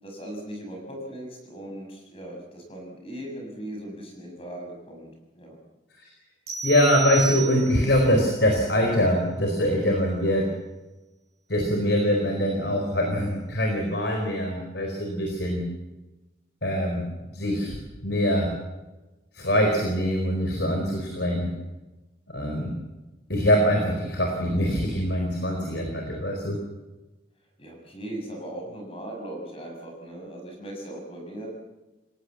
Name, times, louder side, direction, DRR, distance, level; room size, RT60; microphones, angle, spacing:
voice 1, 0.0-5.6 15.2-15.3 27.6-31.5, right 1 dB, 30° left, 2 dB, 6.3 m, -38 dB
sound 1, 6.5-8.0, right 4 dB, 55° right, 6.5 m, -32 dB
voice 2, 6.6-10.5 11.5-15.6 16.6-17.1 17.3-17.8 18.0-18.5 19.3-21.5 22.3-22.7 23.3-26.6, equal, 65° left, 2 dB, 4.3 m, -23 dB
28.5 x 17.0 x 7.4 m, 1.1 s
head